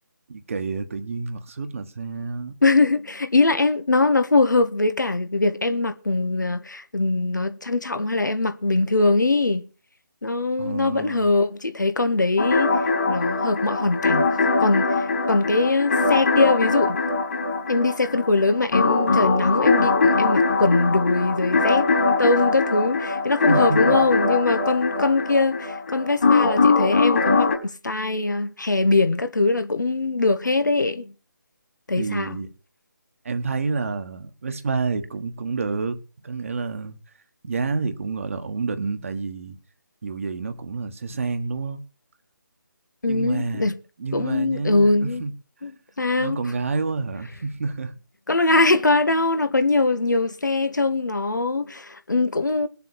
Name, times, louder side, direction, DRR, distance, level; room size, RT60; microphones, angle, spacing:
voice 1, 0.3-2.5 10.6-11.3 23.5-24.0 32.0-32.5 33.2-37.0 37.4-39.6 40.0-41.8 43.0-43.7 44.0-45.3 45.6-45.7 46.2-47.9, right 4 dB, 45° right, 1.5 m, -29 dB
voice 2, 2.6-9.6 10.2-14.3 14.6-17.0 17.7-31.1 31.9-32.4 43.0-43.7 44.1-45.2 45.6-45.7 46.0-46.4 48.3-52.7, left 3 dB, 70° left, 1.5 m, -22 dB
sound 1, 12.4-27.6, left 3 dB, 45° left, 3.8 m, -21 dB
21.5 x 7.2 x 4.6 m
figure-of-eight pair, 150°, 10 cm